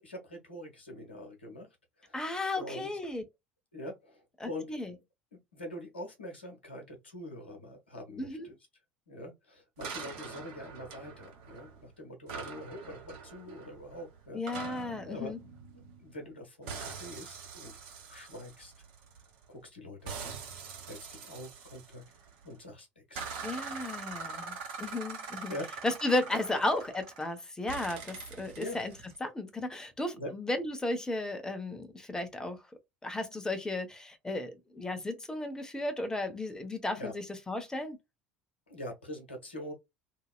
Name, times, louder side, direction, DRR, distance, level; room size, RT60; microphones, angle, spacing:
voice 1, 0.0-1.7 2.0-2.3 2.5-2.9 3.7-4.7 5.3-8.5 9.1-14.7 15.0-15.3 16.0-17.7 18.1-18.7 19.5-20.4 20.8-22.0 22.4-23.3 25.5-25.7 26.5-26.6 28.5-28.8 30.1-30.3 37.0-37.1 38.7-39.7, left 1 dB, 80° left, 1.0 m, -44 dB
voice 2, 2.1-3.2 4.4-4.9 8.2-8.5 14.3-15.4 23.4-25.5 25.8-28.9 29.2-32.6 33.0-38.0, left 2 dB, 10° left, 0.9 m, -34 dB
sound 1, 9.8-11.8 12.3-16.3 16.7-19.4 20.1-22.5 23.2-27.3 27.7-29.2, right 5 dB, 60° right, 1.2 m, -43 dB
2.8 x 2.8 x 2.3 m
figure-of-eight pair, 65°, 6 cm